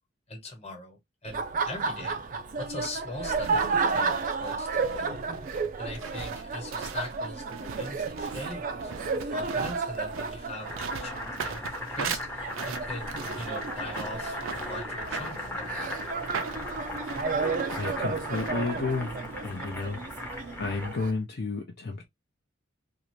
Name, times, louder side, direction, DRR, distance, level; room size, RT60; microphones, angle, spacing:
voice 1, 0.3-2.2 2.6-5.2 5.7-16.1, left 2 dB, 30° left, 1.1 m, -41 dB
Laughter, 1.2-21.1, right 4 dB, 40° right, 0.4 m, -33 dB
sound 1, 3.4-18.8, right 6 dB, 85° right, 0.6 m, -40 dB
Boiling, 10.5-21.2, left 1 dB, 10° left, 0.7 m, -38 dB
voice 2, 17.8-19.1 19.4-20.0 20.6-22.1, left 3 dB, 50° left, 0.5 m, -31 dB
2.6 x 2.5 x 3.0 m
head